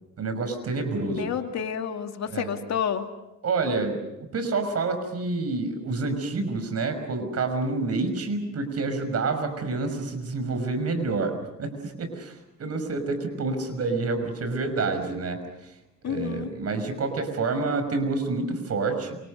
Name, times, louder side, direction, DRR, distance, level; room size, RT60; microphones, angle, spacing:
voice 1, 0.2-1.3 2.3-2.6 3.4-4.0 4.3-15.7 16.1-19.2, right 3 dB, 55° right, 8 dB, 5.9 m, -28 dB
voice 2, 1.2-3.1 16.0-16.5, left 8 dB, 65° left, 5 dB, 2.5 m, -29 dB
28.0 x 26.0 x 6.5 m, 0.93 s
cardioid pair, 90°, 30 cm